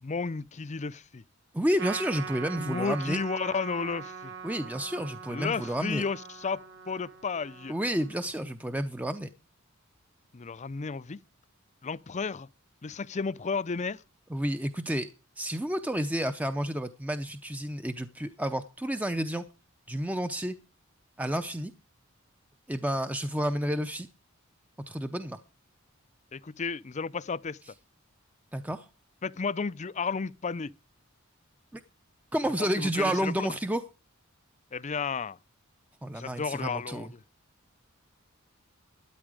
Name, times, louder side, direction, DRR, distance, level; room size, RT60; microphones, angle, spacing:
voice 1, 0.0-1.2 2.6-4.3 5.3-7.7 10.3-11.2 11.8-12.5 12.8-14.0 26.3-27.6 29.2-30.7 32.6-33.5 34.7-35.4 36.1-37.1, left 5 dB, 35° left, 0.5 m, -33 dB
voice 2, 1.5-3.2 4.4-6.0 7.7-9.3 14.3-15.1 15.4-19.4 19.9-20.6 21.2-21.7 22.7-24.1 24.9-25.4 28.5-28.9 31.7-31.8 32.3-33.8 36.0-37.1, equal, 5° right, 0.6 m, -30 dB
Trumpet, 1.8-8.5, right 6 dB, 55° right, 2.1 m, -42 dB
12.5 x 10.5 x 4.8 m
head